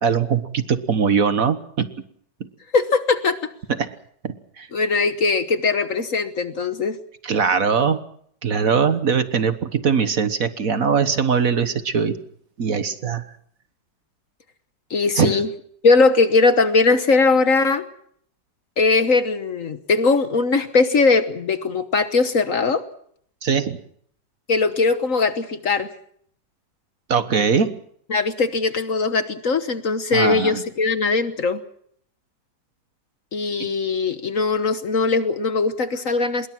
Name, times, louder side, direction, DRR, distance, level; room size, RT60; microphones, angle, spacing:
voice 1, 0.0-1.9 3.8-3.9 4.2-4.7 7.2-8.0 8.4-12.2 12.6-13.2 15.1-15.4 23.4-23.8 27.1-27.8 30.1-30.6 33.6-33.7, right 6 dB, 50° right, 11 dB, 1.6 m, -21 dB
voice 2, 2.7-3.5 4.7-7.0 14.9-15.5 15.8-17.8 18.8-22.8 24.5-25.9 28.1-31.6 33.3-36.5, left 4 dB, 50° left, 11 dB, 1.5 m, -20 dB
25.5 x 22.0 x 6.1 m, 0.65 s
omnidirectional pair, 1.9 m